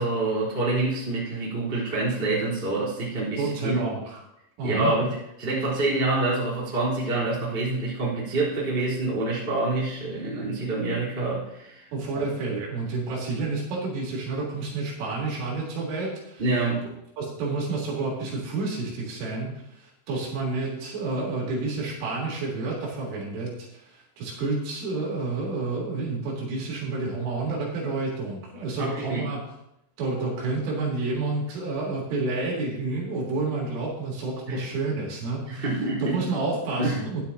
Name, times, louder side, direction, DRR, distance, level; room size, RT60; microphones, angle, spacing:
voice 1, 0.0-3.8 4.6-11.8 12.1-12.2 16.4-16.9 28.8-29.3 34.5-34.6 35.5-36.1 36.8-37.0, right 2 dB, 15° right, -7 dB, 3.3 m, -27 dB
voice 2, 3.4-4.2 4.6-5.0 11.9-16.4 17.2-23.5 24.2-29.4 30.0-35.7 36.0-37.2, right 3 dB, 70° right, -4 dB, 5.6 m, -29 dB
16.5 x 11.0 x 2.9 m, 0.82 s
omnidirectional pair, 6.0 m